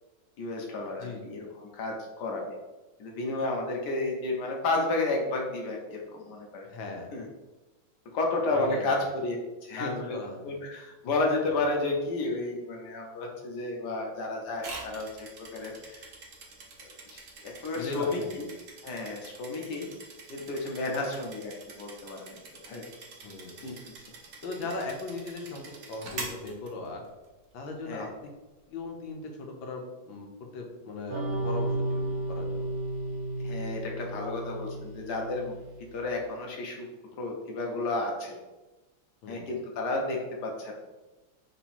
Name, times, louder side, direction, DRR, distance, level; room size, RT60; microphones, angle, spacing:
voice 1, 0.4-2.5 3.0-6.7 7.1-7.3 8.1-9.4 9.6-10.1 10.4-16.1 17.1-18.5 18.8-19.9 20.3-22.4 22.6-22.9 23.6-23.8 27.9-28.1 33.4-35.6 35.9-36.9 37.2-38.4 39.3-40.7, left 2 dB, 65° left, 0 dB, 1.4 m, -32 dB
voice 2, 6.7-7.1 8.5-9.0 9.8-10.4 17.8-18.4 23.2-23.6 24.4-27.0 27.5-28.3 28.7-32.7 39.2-39.5, left 2 dB, 85° left, 2 dB, 1.5 m, -38 dB
sound 1, 14.6-27.3, right 3 dB, 60° right, 1.2 m, -45 dB
sound 2, 31.1-35.9, right 1 dB, 90° right, 1.4 m, -33 dB
3.9 x 2.9 x 4.2 m, 1.1 s
omnidirectional pair, 2.1 m